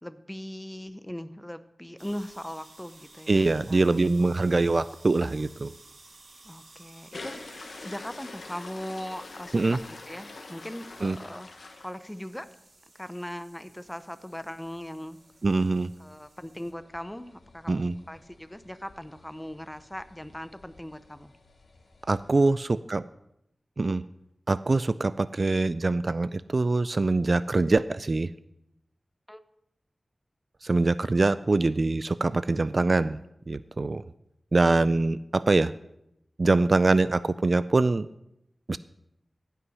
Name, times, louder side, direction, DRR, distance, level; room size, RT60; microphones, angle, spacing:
voice 1, 0.0-3.8 6.4-11.5 11.8-12.5 12.9-15.2 16.0-21.3 29.3-29.4, equal, 10° left, 12 dB, 0.7 m, -39 dB
sound 1, 2.0-16.7, right 2 dB, 70° right, 2.0 m, -55 dB
voice 2, 3.3-5.7 9.5-9.8 11.0-11.2 15.4-15.9 17.7-17.9 22.1-23.0 23.8-24.0 24.5-28.3 30.6-33.2 33.5-34.0 34.5-35.7 36.4-38.1 38.7-38.8, right 3 dB, 50° right, 16 dB, 0.3 m, -24 dB
sound 2, 7.1-12.6 13.0-13.2 13.6-13.7 13.9-14.0 14.2-22.5, left 3 dB, 85° left, 1.2 m, -47 dB
15.5 x 5.7 x 5.5 m, 0.81 s
wide cardioid pair, 70°, 0 cm